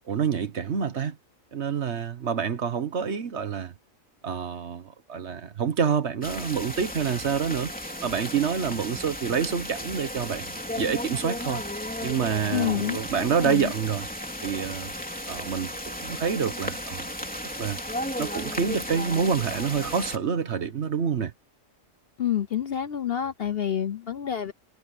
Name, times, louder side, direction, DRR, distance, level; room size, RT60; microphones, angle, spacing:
voice 1, 0.1-1.2 1.5-3.7 4.2-7.7 8.0-11.6 12.0-14.1 14.4-14.9 15.3-17.0 17.6-17.8 18.2-21.3, right 7 dB, 55° right, 1.3 m, -27 dB
sound 1, 6.2-20.2, equal, 5° left, 3.2 m, -34 dB
voice 2, 12.5-13.7 22.2-24.5, left 10 dB, 55° left, 0.8 m, -28 dB
omnidirectional pair, 1.5 m